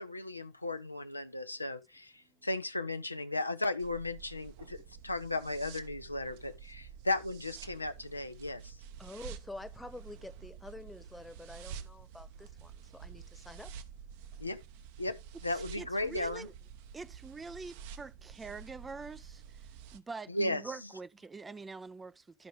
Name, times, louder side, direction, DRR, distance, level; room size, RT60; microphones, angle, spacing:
voice 1, 0.0-8.8 14.4-14.6 15.0-15.2 15.4-16.5 20.3-20.9, left 2 dB, 85° left, 0.7 m, -36 dB
sound 1, 3.8-20.0, right 8 dB, 55° right, 1.0 m, -49 dB
voice 2, 9.0-13.7, left 2 dB, 5° left, 1.1 m, -48 dB
voice 3, 15.5-16.5 16.9-22.5, right 4 dB, 15° right, 0.5 m, -45 dB
12.5 x 5.1 x 3.8 m
figure-of-eight pair, 75°, 0 cm